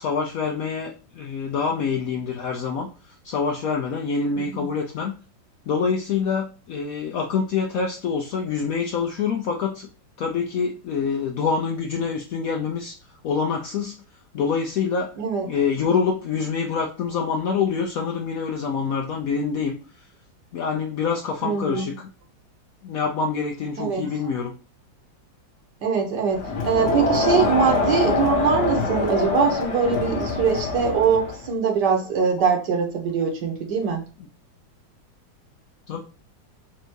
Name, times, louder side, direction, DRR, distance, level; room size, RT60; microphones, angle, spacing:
voice 1, 0.0-5.1 5.7-9.9 10.2-13.0 13.2-14.0 14.3-15.1 15.5-19.8 20.5-22.1 22.8-24.5 35.9-36.0, left 5 dB, 70° left, 2 dB, 0.8 m, -26 dB
voice 2, 21.4-21.9 23.8-24.1 25.8-34.0, right 6 dB, 65° right, 2 dB, 1.7 m, -22 dB
Crowd, 26.3-31.5, left 3 dB, 45° left, 1.3 m, -24 dB
4.4 x 2.6 x 4.5 m, 0.34 s
omnidirectional pair, 2.0 m